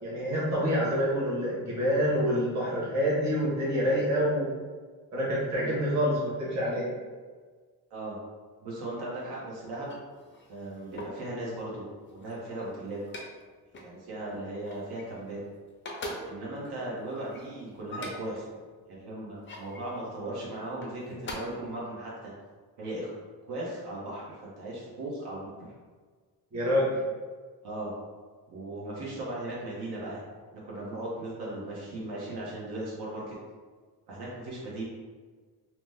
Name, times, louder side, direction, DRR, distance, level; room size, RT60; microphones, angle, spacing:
voice 1, 0.0-4.5 5.1-6.9 26.5-27.0, equal, 45° right, -7 dB, 1.1 m, -27 dB
voice 2, 8.6-9.9 10.5-11.8 12.1-13.0 13.8-15.4 16.2-18.4 18.9-22.3 22.8-23.1 23.5-25.7 27.6-27.9 28.5-30.2 30.5-33.4 34.1-34.8, right 1 dB, 85° right, -6 dB, 1.0 m, -37 dB
sound 1, 9.7-11.3 11.9-13.4 13.7-14.0 14.3-15.4 15.7-18.4 19.1-19.9 20.7-21.3, left 1 dB, 30° left, 0.4 m, -43 dB
2.9 x 2.1 x 3.4 m, 1.5 s
wide cardioid pair, 175°, 38 cm